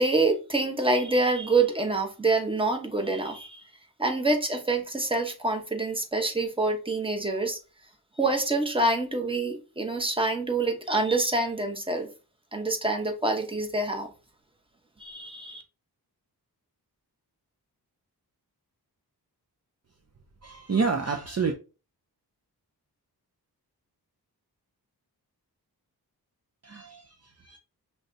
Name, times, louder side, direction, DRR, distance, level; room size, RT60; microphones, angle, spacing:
voice 1, 0.0-3.6 4.0-7.6 8.2-12.1 12.5-14.1 15.0-15.6, right 2 dB, 15° right, 1.1 m, -26 dB
voice 2, 20.4-21.5 26.6-27.6, right 5 dB, 40° right, 0.7 m, -29 dB
5.5 x 3.4 x 2.7 m
wide cardioid pair, 70°, 39 cm